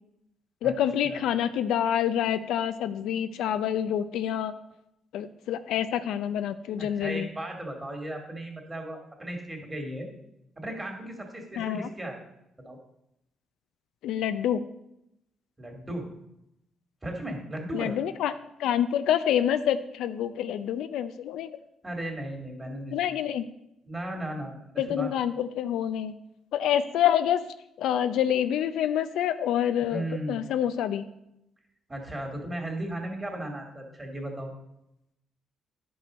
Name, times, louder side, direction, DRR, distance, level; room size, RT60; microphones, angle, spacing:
voice 1, 0.6-4.5 5.1-7.3 11.6-11.9 14.0-14.6 17.7-18.3 18.6-21.5 22.9-23.4 24.8-26.1 26.5-27.4 27.8-31.1, left 10 dB, 85° left, 11 dB, 0.5 m, -27 dB
voice 2, 6.8-10.1 10.6-12.2 12.6-12.8 15.6-16.1 17.0-17.9 21.8-23.1 23.8-25.1 29.9-30.4 31.9-34.5, right 1 dB, 20° right, 2 dB, 2.7 m, -36 dB
10.5 x 5.5 x 5.2 m, 0.84 s
cardioid pair, 90°, 0 cm